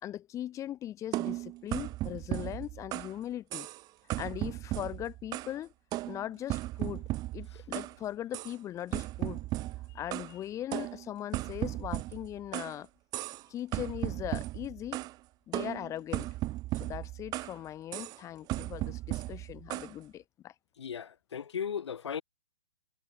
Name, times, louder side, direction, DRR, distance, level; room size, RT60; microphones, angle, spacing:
voice 1, 0.0-3.7 4.2-5.7 6.1-7.0 7.3-9.4 9.9-12.9 13.5-15.0 15.5-16.3 16.8-20.5, left 12 dB, 20° left, 4.2 m, -39 dB
sound 1, 1.1-3.2 3.5-3.8 4.1-5.6 5.9-8.0 8.3-8.6 8.9-10.3 10.7-12.8 13.1-13.5 13.7-15.1 15.5-17.6 17.9-18.2 18.5-19.9, right 17 dB, 25° right, 3.3 m, -36 dB
voice 2, 20.8-22.2, left 7 dB, 75° left, 2.5 m, -36 dB
hypercardioid pair, 135°, 15 cm